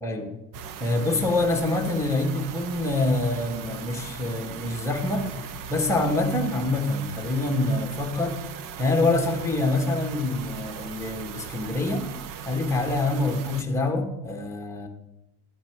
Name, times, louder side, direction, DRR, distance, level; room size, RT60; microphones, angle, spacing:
sound 1, 0.5-13.6, right 7 dB, 45° right, 0.9 m, -39 dB
voice 1, 0.8-8.4 8.8-12.1 12.4-14.9, left 2 dB, 5° left, 2 dB, 1.6 m, -26 dB
12.5 x 7.9 x 3.6 m, 0.90 s
hypercardioid pair, 85°, 45 cm